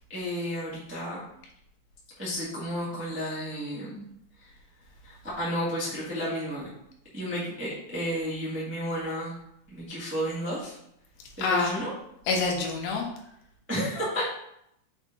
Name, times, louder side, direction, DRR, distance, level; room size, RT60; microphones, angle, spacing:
voice 1, 0.1-1.2 2.2-4.0 5.0-6.7 7.1-9.3 9.7-10.7 11.4-11.9 13.7-14.2, equal, 15° right, -8 dB, 0.4 m, -32 dB
voice 2, 11.4-11.8 12.3-13.1, left 4 dB, 75° left, 1 dB, 2.7 m, -26 dB
7.2 x 4.0 x 3.7 m, 0.75 s
omnidirectional pair, 4.5 m